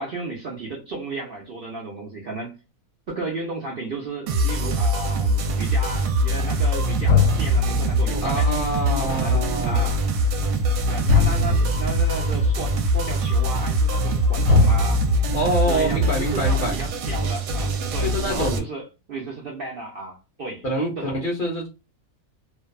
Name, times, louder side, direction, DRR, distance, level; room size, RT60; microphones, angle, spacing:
voice 1, 0.0-2.5 3.1-8.5 9.0-10.0 10.9-15.1 15.7-18.8 19.1-20.6 21.0-21.2, right 2 dB, 55° right, 0.6 m, -33 dB
sound 1, 4.3-18.6, right 1 dB, 85° right, 1.1 m, -23 dB
sound 2, 6.5-6.6 7.1-14.2 14.5-16.5, left 4 dB, 70° left, 1.0 m, -24 dB
voice 2, 8.2-9.9 11.4-11.7 15.3-16.8 18.0-18.6 20.6-21.7, equal, 50° left, 0.7 m, -26 dB
2.6 x 2.3 x 2.2 m
omnidirectional pair, 1.6 m